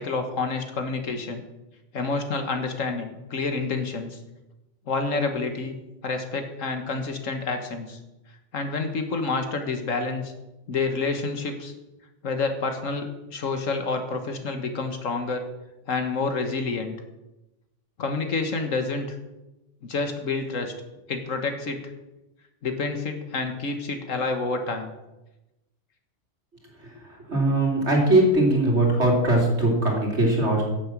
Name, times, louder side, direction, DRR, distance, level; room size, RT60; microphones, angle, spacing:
voice 1, 0.0-1.4 1.9-4.2 4.9-5.8 6.0-8.0 8.5-10.3 10.7-11.7 12.2-15.4 15.9-17.0 18.0-19.1 19.8-20.7 21.1-21.8 22.6-24.9, left 3 dB, 75° left, 6 dB, 1.8 m, -28 dB
voice 2, 27.0-30.6, right 1 dB, 55° right, -1 dB, 3.3 m, -21 dB
11.0 x 7.2 x 7.5 m, 1.0 s
omnidirectional pair, 1.4 m